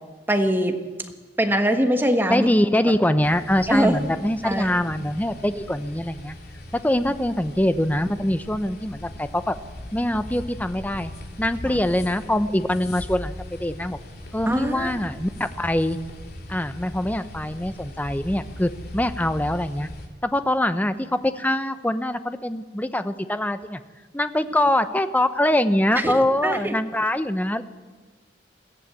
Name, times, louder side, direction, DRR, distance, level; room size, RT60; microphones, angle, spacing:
voice 1, 0.3-0.8 1.4-2.5 3.7-4.1 4.4-4.8 11.7-11.8 14.5-15.0 26.0-26.1 26.4-26.7, right 1 dB, 10° right, 6 dB, 1.4 m, -22 dB
voice 2, 2.3-6.3 6.7-9.6 9.9-11.1 11.4-14.0 14.3-16.0 16.5-19.9 20.2-23.8 24.1-27.6, left 1 dB, 10° left, 11 dB, 0.9 m, -23 dB
sound 1, 3.2-20.1, left 1 dB, 60° left, 3.2 m, -39 dB
21.5 x 15.5 x 8.4 m, 1.3 s
head